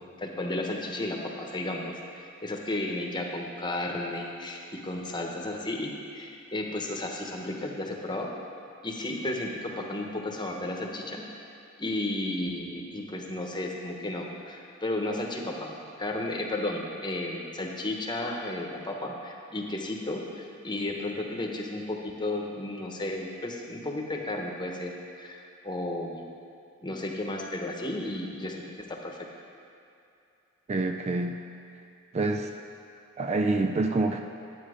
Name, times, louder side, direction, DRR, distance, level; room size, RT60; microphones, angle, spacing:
voice 1, 0.2-8.3 8.8-11.2 11.8-26.2 26.8-28.6 28.9-29.2, left 1 dB, 20° left, 0 dB, 1.1 m, -33 dB
voice 2, 30.7-31.4 32.1-32.5 33.2-34.2, right 2 dB, 30° right, 5 dB, 0.4 m, -26 dB
10.0 x 8.8 x 5.0 m, 2.6 s
head